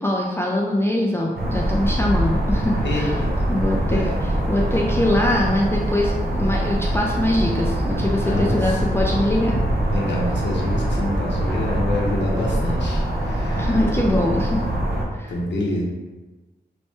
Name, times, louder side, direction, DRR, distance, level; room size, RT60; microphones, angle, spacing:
voice 1, 0.0-3.2 3.5-9.6 13.6-14.6 15.1-15.3, left 1 dB, 15° left, -3 dB, 0.4 m, -23 dB
sound 1, 1.3-15.0, right 1 dB, 55° right, 0.7 m, -23 dB
voice 2, 2.8-3.3 3.8-4.1 4.7-4.8 8.2-9.1 9.9-13.7 15.3-15.8, left 1 dB, 75° left, -3 dB, 0.7 m, -27 dB
3.2 x 2.1 x 3.0 m, 1.2 s
cardioid pair, 40°, 18 cm